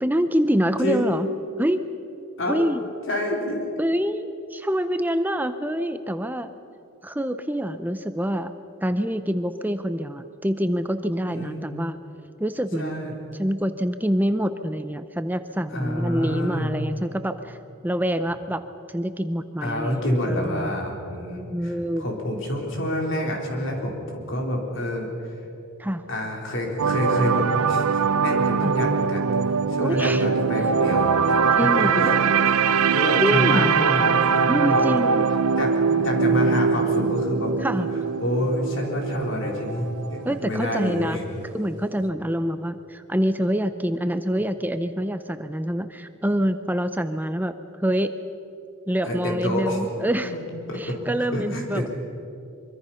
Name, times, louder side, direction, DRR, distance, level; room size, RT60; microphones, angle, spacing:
voice 1, 0.0-1.3 1.6-1.8 2.5-2.8 3.8-6.5 7.0-8.5 8.8-12.0 12.4-13.1 13.4-17.6 17.8-18.6 18.9-20.7 21.5-22.1 25.8-26.0 28.6-28.7 29.8-30.3 31.5-31.9 33.2-33.8 34.5-35.3 37.6-37.9 40.2-41.2 41.5-47.5 47.8-48.1 48.9-50.3 50.8-51.9, equal, 10° right, 10 dB, 0.6 m, -26 dB
voice 2, 3.1-3.7 11.2-11.6 12.8-13.1 15.7-16.7 19.6-25.1 26.1-29.3 29.7-32.2 32.4-32.5 32.9-34.3 34.6-34.8 35.6-35.7 36.0-37.5 38.2-41.5 49.0-50.4 50.7-51.0 51.3-51.9, left 1 dB, 55° left, 0 dB, 3.9 m, -27 dB
sound 1, 26.8-40.9 41.2-41.5, right 5 dB, 80° right, 0.6 m, -22 dB
24.0 x 24.0 x 5.8 m, 2.7 s
head